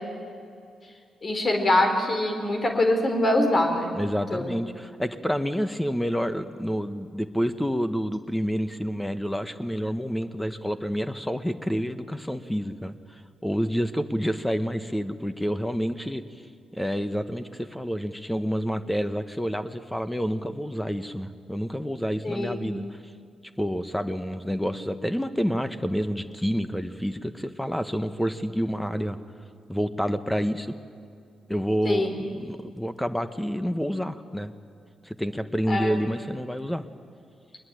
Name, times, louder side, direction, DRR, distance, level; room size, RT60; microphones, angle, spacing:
voice 1, 1.2-3.9 4.3-4.6 22.2-22.7 31.8-32.1 35.7-35.9, left 1 dB, 45° left, 4 dB, 4.1 m, -23 dB
voice 2, 3.9-16.2 16.7-23.0 23.6-29.2 29.7-30.7 31.5-34.5 35.0-36.9, equal, 5° left, 11 dB, 1.3 m, -28 dB
23.0 x 20.5 x 8.9 m, 2.3 s
hypercardioid pair, 40°, 0 cm